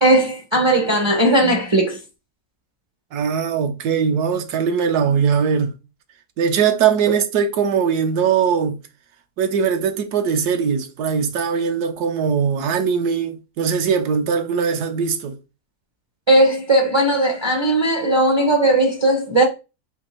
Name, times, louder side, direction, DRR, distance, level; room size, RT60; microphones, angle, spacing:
voice 1, 0.0-2.0 16.3-19.4, right 1 dB, 35° right, 0.4 m, -17 dB
voice 2, 3.1-5.7 6.4-8.8 9.4-15.4, right 6 dB, 75° right, 1.2 m, -20 dB
4.4 x 2.7 x 4.3 m
omnidirectional pair, 1.7 m